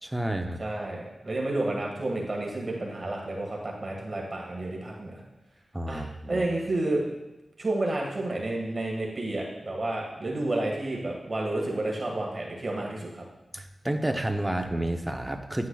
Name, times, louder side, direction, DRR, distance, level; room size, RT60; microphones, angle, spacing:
voice 1, 0.0-0.6 5.7-6.5 13.5-15.7, right 1 dB, 15° right, 5 dB, 0.7 m, -30 dB
voice 2, 0.6-5.2 5.9-6.0 6.3-7.0 7.6-13.2, right 2 dB, 35° right, -2 dB, 1.7 m, -30 dB
9.8 x 9.4 x 2.3 m, 1.0 s
wide cardioid pair, 90°, 0 cm